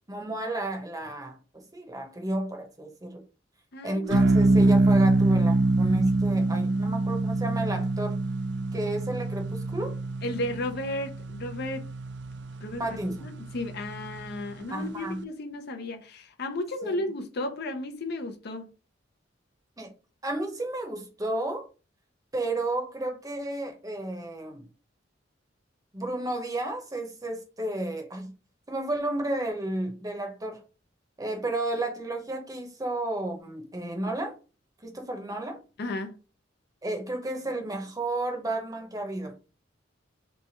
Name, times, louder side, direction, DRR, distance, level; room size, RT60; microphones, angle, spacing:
voice 1, 0.1-3.2 3.8-8.2 8.7-9.9 12.8-13.3 14.7-15.2 16.8-17.1 19.8-19.9 20.2-21.7 22.3-24.7 25.9-28.3 28.7-30.6 31.2-34.4 34.8-35.6 36.8-39.3, right 1 dB, 20° right, 0.9 m, -32 dB
voice 2, 3.7-4.9 10.2-11.9 12.6-18.7 35.8-36.1, left 1 dB, 55° left, 0.6 m, -34 dB
sound 1, 4.1-14.6, right 2 dB, 65° right, 0.5 m, -25 dB
3.2 x 3.2 x 4.4 m
head